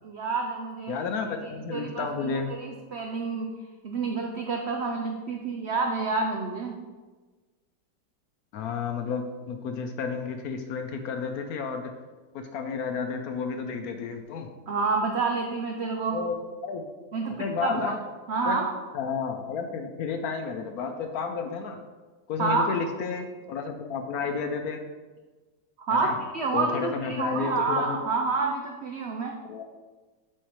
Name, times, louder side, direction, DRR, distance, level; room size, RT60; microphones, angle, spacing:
voice 1, 0.0-1.0 1.4-3.5 3.8-6.8 14.7-16.2 17.1-17.9 18.3-18.7 22.4-22.7 25.8-26.1 26.3-29.3, right 4 dB, 85° right, 2 dB, 0.6 m, -28 dB
voice 2, 0.9-2.5 8.5-11.9 12.3-14.5 16.1-16.4 16.6-16.8 17.4-18.0 18.4-18.6 18.9-21.8 22.3-24.8 25.9-26.2 26.5-28.0 29.5-29.6, left 5 dB, 70° left, 6 dB, 0.9 m, -31 dB
8.8 x 4.7 x 3.1 m, 1.3 s
omnidirectional pair, 1.9 m